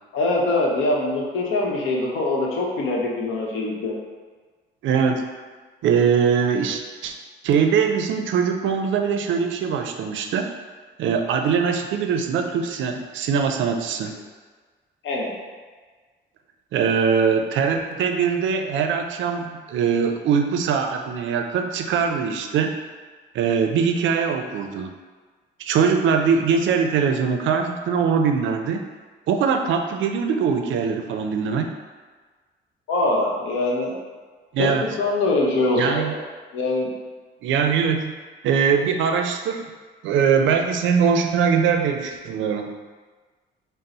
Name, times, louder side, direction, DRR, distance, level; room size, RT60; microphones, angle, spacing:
voice 1, 0.1-3.9 15.0-15.3 32.9-33.9 34.6-36.2 36.5-36.9, left 2 dB, 80° left, -2 dB, 0.8 m, -23 dB
voice 2, 4.8-5.3 5.8-7.1 7.4-10.5 11.0-14.1 16.7-22.8 23.3-24.9 25.6-28.8 29.3-31.7 34.5-34.8 35.7-36.1 37.4-38.1 38.4-39.6 40.0-42.7, right 6 dB, 75° right, 5 dB, 0.4 m, -22 dB
3.9 x 2.0 x 4.1 m, 1.4 s
cardioid pair, 90°, 20 cm